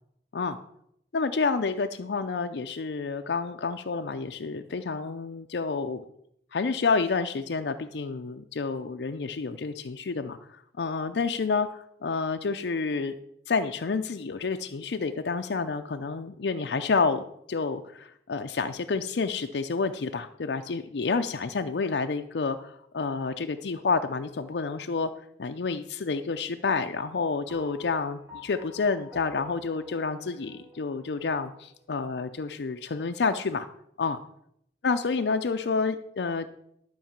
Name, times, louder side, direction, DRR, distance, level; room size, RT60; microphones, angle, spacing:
voice 1, 1.1-6.0 6.5-13.1 13.5-25.1 25.4-33.7 34.0-34.2 34.8-36.5, left 4 dB, 70° left, 6 dB, 0.5 m, -29 dB
sound 1, 27.5-31.9, equal, 10° right, 3.0 m, -48 dB
12.5 x 4.6 x 7.3 m, 0.74 s
head